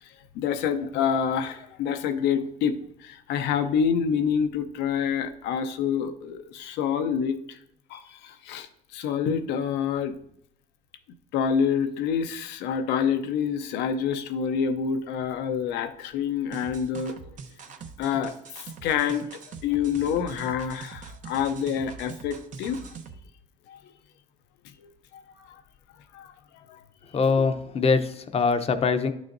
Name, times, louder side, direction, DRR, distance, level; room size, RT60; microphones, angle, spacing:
voice 1, 0.0-7.6 7.9-10.2 11.3-17.2 18.0-22.8 23.7-23.9 24.8-25.6 26.1-26.9, left 7 dB, 90° left, 9 dB, 0.7 m, -27 dB
sound 1, 16.5-23.2, right 5 dB, 45° right, 0.8 m, -43 dB
voice 2, 27.1-29.1, left 4 dB, 35° left, 9 dB, 0.7 m, -23 dB
11.0 x 6.3 x 2.6 m, 0.72 s
cardioid pair, 110°, 17 cm